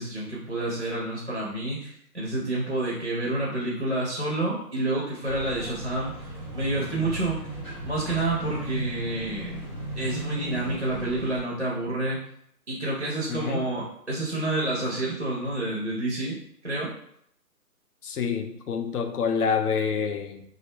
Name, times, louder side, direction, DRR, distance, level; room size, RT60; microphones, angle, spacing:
voice 1, 0.0-6.1 6.5-7.4 7.8-9.5 10.0-12.2 12.7-16.4 16.6-16.9, right 2 dB, 45° right, -5 dB, 0.4 m, -28 dB
sound 1, 5.2-11.4, right 1 dB, ahead, 0.6 m, -37 dB
voice 2, 13.3-13.7 18.0-20.4, left 6 dB, 70° left, 6 dB, 0.5 m, -27 dB
2.4 x 2.1 x 3.0 m, 0.70 s
hypercardioid pair, 180°, 47 cm